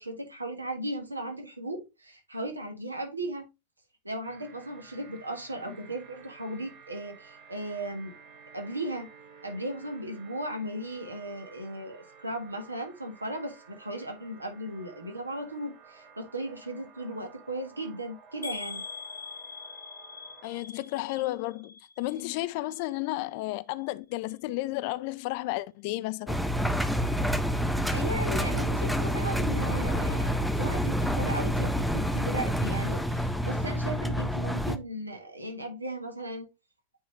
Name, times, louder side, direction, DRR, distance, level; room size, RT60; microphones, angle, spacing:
voice 1, 0.0-3.5 4.0-8.1 8.5-9.1 9.4-18.8 27.9-36.5, right 1 dB, 80° right, 1.5 m, -36 dB
sound 1, 4.2-20.6, right 6 dB, 40° right, 2.7 m, -53 dB
sound 2, 18.4-22.4 22.7-23.3 23.8-23.9 24.2-24.3, left 5 dB, 80° left, 0.9 m, -43 dB
voice 2, 20.4-26.4, left 18 dB, 45° left, 0.4 m, -33 dB
Engine, 26.3-34.8, equal, ahead, 0.6 m, -28 dB
8.8 x 3.9 x 3.2 m
figure-of-eight pair, 90°, 0 cm